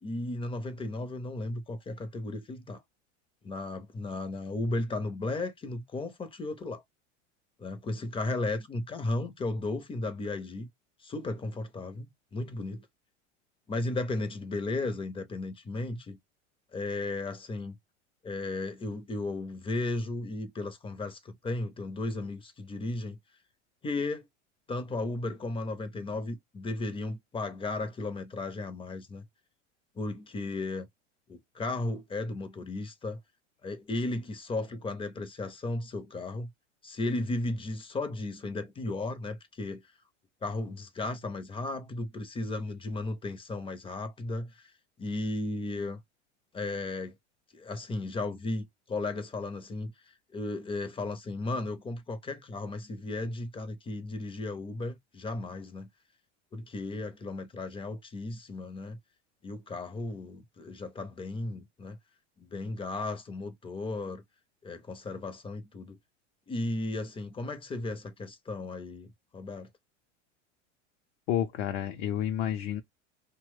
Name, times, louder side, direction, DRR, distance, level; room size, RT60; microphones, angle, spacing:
voice 1, 0.0-2.8 3.4-6.8 7.6-10.7 11.0-12.9 13.7-16.2 16.7-17.8 18.2-23.2 23.8-24.3 24.7-29.2 30.0-30.9 31.3-33.2 33.6-36.5 36.8-39.8 40.4-44.7 45.0-46.0 46.5-47.1 47.5-55.9 56.5-59.0 59.4-62.0 62.4-64.2 64.6-66.0 66.5-69.1 69.3-69.7, left 2 dB, 15° left, 0.5 m, -35 dB
voice 2, 71.3-72.8, left 10 dB, 55° left, 0.6 m, -30 dB
2.9 x 2.2 x 3.1 m
hypercardioid pair, 90°, 36 cm